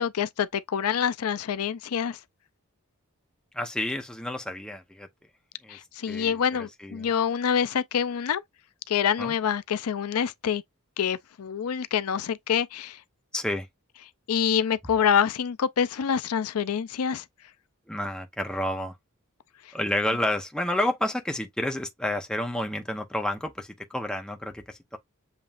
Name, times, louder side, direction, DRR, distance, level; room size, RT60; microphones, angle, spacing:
voice 1, 0.0-2.2 5.7-8.4 8.9-10.6 11.0-13.0 14.3-17.2, left 7 dB, 85° left, 0.5 m, -26 dB
voice 2, 3.5-5.1 5.6-5.8 6.1-7.1 9.2-9.3 13.3-13.7 17.9-19.0 19.7-25.0, left 1 dB, 5° left, 0.8 m, -30 dB
7.2 x 3.0 x 2.4 m
head